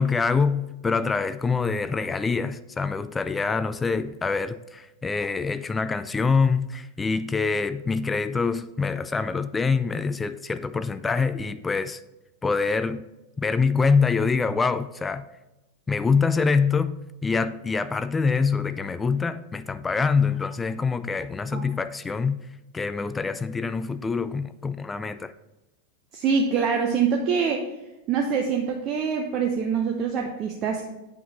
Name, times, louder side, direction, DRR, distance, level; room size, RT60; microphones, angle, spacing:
voice 1, 0.0-12.0 12.4-13.1 13.4-15.3 15.9-17.0 17.2-22.4 22.7-25.3, left 4 dB, 15° left, 0.3 m, -25 dB
voice 2, 26.1-27.6 28.1-30.8, right 6 dB, 35° right, 0.8 m, -24 dB
8.4 x 5.7 x 4.0 m
figure-of-eight pair, 90°, 0 cm